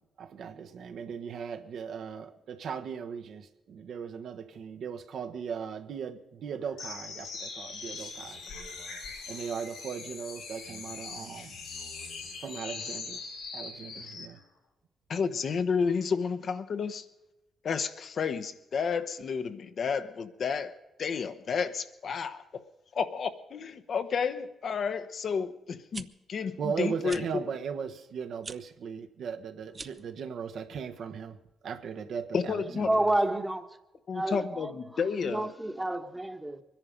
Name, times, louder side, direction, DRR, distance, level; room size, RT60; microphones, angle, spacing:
voice 1, 0.0-8.4 9.3-11.6 12.4-13.2 13.5-14.4 26.6-31.4 31.6-33.1, right 6 dB, 70° right, 1.2 m, -38 dB
sound 1, 6.8-14.3, left 4 dB, 90° left, 5.8 m, -41 dB
voice 2, 15.1-17.0 17.6-22.6 22.9-27.2 32.3-32.9 34.1-35.5, left 6 dB, 60° left, 1.0 m, -31 dB
sound 2, 25.7-26.0 27.0-27.2 28.4-28.6 29.7-30.1, right 4 dB, 30° right, 0.7 m, -42 dB
voice 3, 32.5-33.7 34.1-34.7 35.2-36.6, right 1 dB, 10° right, 1.2 m, -30 dB
23.0 x 10.5 x 5.2 m
cardioid pair, 90°, 0 cm